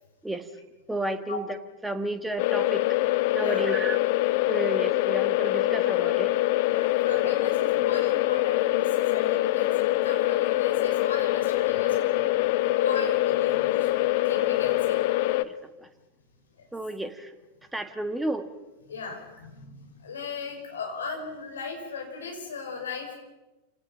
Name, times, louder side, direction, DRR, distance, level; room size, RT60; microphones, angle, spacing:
voice 1, 0.9-1.4 1.8-2.9 3.3-4.0 4.5-6.3 7.2-7.3 15.4-15.5 15.8-15.9 16.7-17.3 17.7-18.5, right 1 dB, 5° right, 8 dB, 1.7 m, -32 dB
sound 1, 2.4-15.4, left 17 dB, 50° left, 0.8 m, -24 dB
voice 2, 3.4-3.7 4.5-4.6 6.7-12.3 12.7-13.9 14.2-15.0 18.9-23.1, left 5 dB, 70° left, 2 dB, 5.7 m, -36 dB
29.0 x 18.5 x 5.8 m, 1.1 s
figure-of-eight pair, 90°, 0 cm